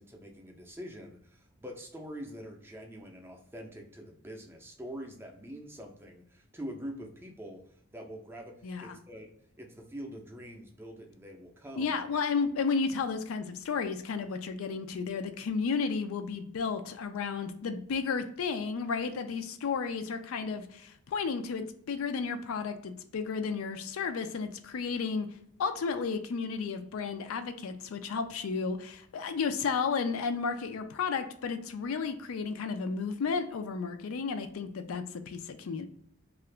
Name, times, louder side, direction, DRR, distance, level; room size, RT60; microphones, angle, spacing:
voice 1, 0.0-9.3 9.6-12.2, equal, 10° right, 2 dB, 0.4 m, -45 dB
voice 2, 8.6-9.0 11.8-25.3 25.6-35.8, left 5 dB, 90° left, 8 dB, 0.4 m, -33 dB
2.8 x 2.4 x 3.2 m, 0.64 s
head